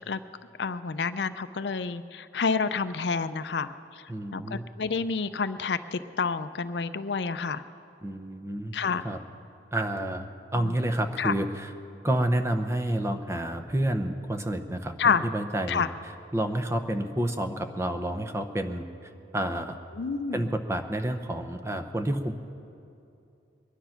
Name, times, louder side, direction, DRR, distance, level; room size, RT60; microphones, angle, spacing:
voice 1, 0.6-4.0 4.3-7.6 8.7-9.0 10.5-10.7 11.2-11.3 15.0-15.2 15.7-15.9 20.0-20.5, left 5 dB, 70° left, 12 dB, 0.5 m, -29 dB
voice 2, 4.1-4.7 8.0-8.8 9.0-9.2 9.7-10.3 10.5-11.7 12.0-15.8 16.3-18.8 19.3-19.8 20.3-22.3, right 1 dB, 15° right, 7 dB, 0.7 m, -29 dB
22.5 x 10.0 x 5.8 m, 2.7 s
head